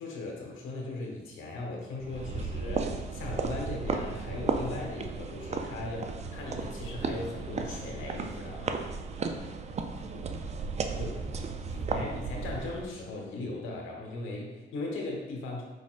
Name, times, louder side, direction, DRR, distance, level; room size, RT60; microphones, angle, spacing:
voice 1, 0.0-8.8 11.0-11.3 11.7-15.6, left 2 dB, 85° left, -1 dB, 1.1 m, -38 dB
sound 1, 2.0-12.9, right 4 dB, 35° right, 0.4 m, -34 dB
voice 2, 9.8-12.2, right 1 dB, 65° right, -1 dB, 1.1 m, -50 dB
4.9 x 4.1 x 2.5 m, 1.2 s
cardioid pair, 90°, 20 cm